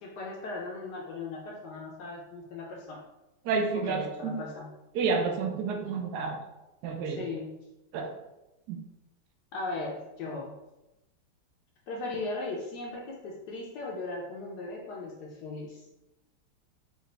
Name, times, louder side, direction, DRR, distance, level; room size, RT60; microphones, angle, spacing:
voice 1, 0.0-3.0 3.7-4.7 7.2-7.5 9.5-10.5 11.9-15.8, left 3 dB, 75° left, -2 dB, 0.9 m, -37 dB
voice 2, 3.4-4.3 4.9-6.4 6.8-7.3 7.9-8.1 8.7-8.8, right 5 dB, 75° right, 3 dB, 0.9 m, -30 dB
4.9 x 2.4 x 3.2 m, 0.97 s
omnidirectional pair, 2.4 m